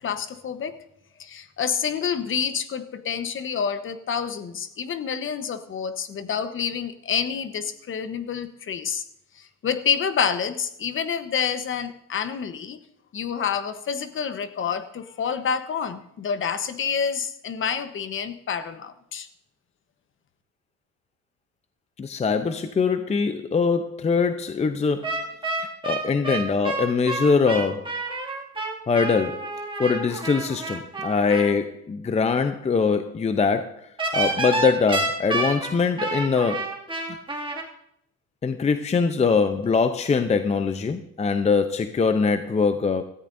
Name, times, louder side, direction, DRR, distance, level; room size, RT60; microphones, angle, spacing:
voice 1, 0.0-0.7 1.2-9.0 9.6-12.8 13.1-19.3, left 7 dB, 40° left, 10 dB, 1.1 m, -28 dB
voice 2, 22.0-25.2 25.6-28.0 28.9-29.5 29.8-36.6 38.4-43.0, left 5 dB, 20° left, 9 dB, 0.6 m, -23 dB
sound 1, 25.0-31.5 34.0-37.6, right 3 dB, 15° right, 2.3 m, -29 dB
17.5 x 14.0 x 2.7 m, 0.76 s
cardioid pair, 100°, 30 cm